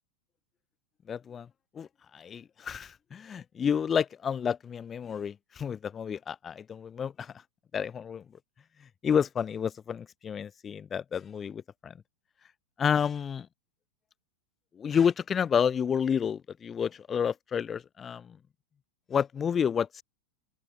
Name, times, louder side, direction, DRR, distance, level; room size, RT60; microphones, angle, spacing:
voice 1, 1.1-1.5 1.7-7.3 7.7-8.2 8.8-11.9 12.8-13.5 14.7-18.4 19.1-20.0, left 7 dB, 20° left, 4.5 m, -30 dB
open air
figure-of-eight pair, 90°, 0 cm